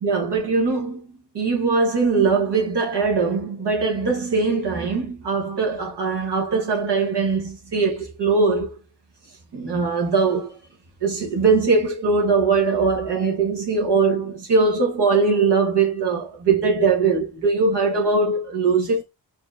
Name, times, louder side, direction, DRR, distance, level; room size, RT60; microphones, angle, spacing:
voice 1, 0.0-1.0 1.3-8.8 9.5-10.6 11.0-19.0, right 4 dB, 75° right, 1.2 m, -21 dB
4.4 x 2.8 x 2.5 m
cardioid pair, 50°, 41 cm